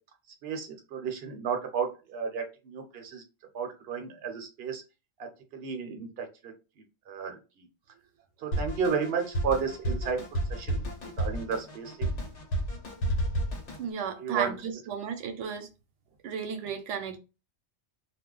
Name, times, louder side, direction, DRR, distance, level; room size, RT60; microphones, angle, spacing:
voice 1, 0.4-3.2 3.5-4.8 5.5-6.5 7.1-7.4 8.4-10.2 10.5-10.8 11.2-12.1 14.2-14.5, right 6 dB, 60° right, 0.9 m, -32 dB
Drum kit, 8.5-13.8, right 1 dB, 75° left, 1.2 m, -31 dB
voice 2, 13.8-15.7 16.2-17.2, right 7 dB, 90° right, 0.9 m, -34 dB
2.4 x 2.2 x 3.7 m
omnidirectional pair, 1.2 m